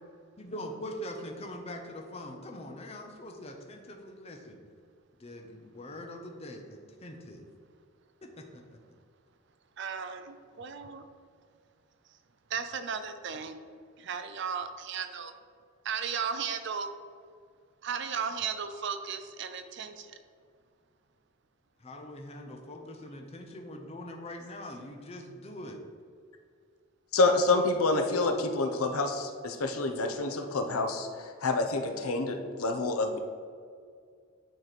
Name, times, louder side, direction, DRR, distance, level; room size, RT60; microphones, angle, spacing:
voice 1, 0.4-4.6 5.2-7.5 8.4-8.8 21.8-25.8, left 1 dB, 30° left, 3 dB, 0.7 m, -43 dB
voice 2, 9.8-11.0 12.5-13.6 14.0-15.3 15.8-16.9 17.8-20.1, right 6 dB, 55° right, 9 dB, 0.4 m, -35 dB
voice 3, 27.1-33.2, left 3 dB, 85° left, 6 dB, 0.7 m, -28 dB
9.1 x 3.1 x 4.1 m, 2.2 s
head